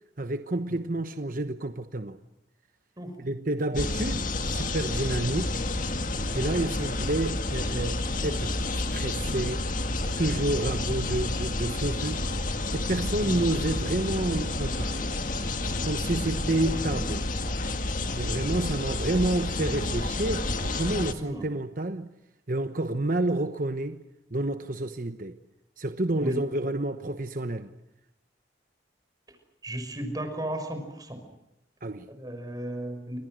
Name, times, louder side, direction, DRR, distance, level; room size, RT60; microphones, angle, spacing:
voice 1, 0.2-2.2 3.2-5.6 6.3-8.6 8.9-9.7 10.2-12.2 12.7-15.1 15.8-17.3 18.2-22.1 22.5-24.0 24.3-25.4 25.8-27.7 31.8-32.1, right 1 dB, 50° right, 1.1 m, -29 dB
sound 1, 3.7-21.1, left 2 dB, 45° left, 2.0 m, -30 dB
voice 2, 21.1-21.5 26.2-26.4 29.6-31.2 32.2-33.2, right 1 dB, 20° right, 5.8 m, -35 dB
29.5 x 26.5 x 6.5 m
head